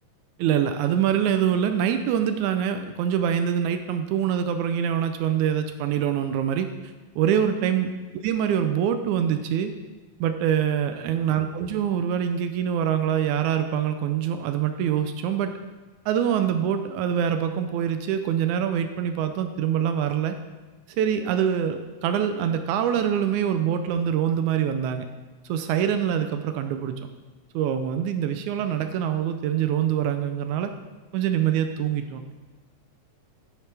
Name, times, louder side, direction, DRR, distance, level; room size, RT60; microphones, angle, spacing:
voice 1, 0.4-7.9 8.2-9.7 10.2-15.5 16.1-20.4 20.9-25.1 25.5-27.0 27.5-30.7 31.1-32.3, right 9 dB, 80° right, 8 dB, 1.9 m, -24 dB
9.8 x 8.1 x 3.3 m, 1.3 s
omnidirectional pair, 3.5 m